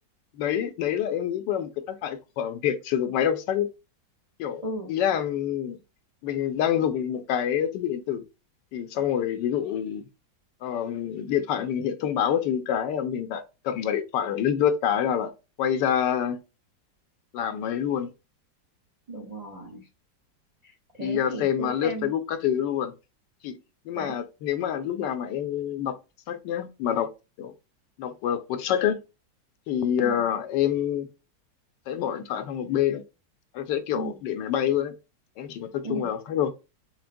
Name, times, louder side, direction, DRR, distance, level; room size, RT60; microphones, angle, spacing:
voice 1, 0.4-3.7 4.4-4.6 4.9-5.8 6.2-8.2 8.7-10.0 10.6-15.3 15.6-16.4 17.3-18.1 21.0-22.9 23.4-23.6 23.9-25.9 26.3-27.1 27.4-27.5 28.0-29.0 29.7-31.1 31.9-33.0 33.5-34.9 35.4-36.5, left 9 dB, 75° left, 1.2 m, -27 dB
voice 2, 19.1-19.9 20.6-22.1 24.0-24.2 30.0-30.3 33.9-34.2 35.8-36.1, right 2 dB, 45° right, 0.4 m, -36 dB
5.9 x 2.1 x 2.5 m
omnidirectional pair, 2.0 m